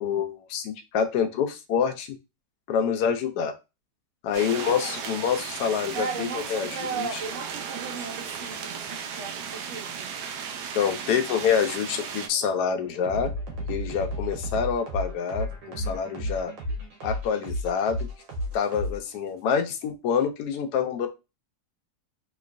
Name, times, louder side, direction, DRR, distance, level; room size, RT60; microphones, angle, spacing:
voice 1, 0.0-2.2 2.7-3.5 4.2-6.7 6.9-7.1 10.7-13.3 13.7-16.5 17.0-18.0 18.5-21.1, left 7 dB, 70° left, 5 dB, 1.1 m, -26 dB
sound 1, 4.3-12.3, right 7 dB, 75° right, 1.2 m, -35 dB
voice 2, 5.9-10.1, right 5 dB, 50° right, 1 dB, 1.0 m, -36 dB
sound 2, 9.6-19.4, equal, 90° right, 1.7 m, -34 dB
3.8 x 3.0 x 2.5 m, 0.26 s
omnidirectional pair, 1.9 m